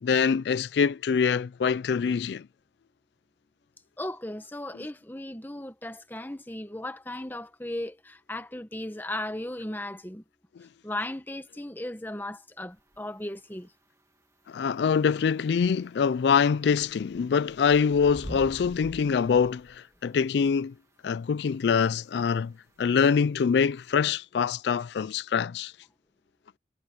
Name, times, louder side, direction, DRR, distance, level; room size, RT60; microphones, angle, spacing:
voice 1, 0.0-2.5 10.6-10.7 14.5-20.7 21.0-22.5 22.8-25.7, left 6 dB, 70° left, 0.3 m, -24 dB
voice 2, 4.0-10.2 10.8-13.7, left 1 dB, 10° left, 1.1 m, -36 dB
sound 1, 12.8-13.0 14.8-14.9 16.0-20.2 21.7-21.8 22.8-22.9 23.2-23.3 24.0-24.1, equal, 15° right, 2.1 m, -45 dB
head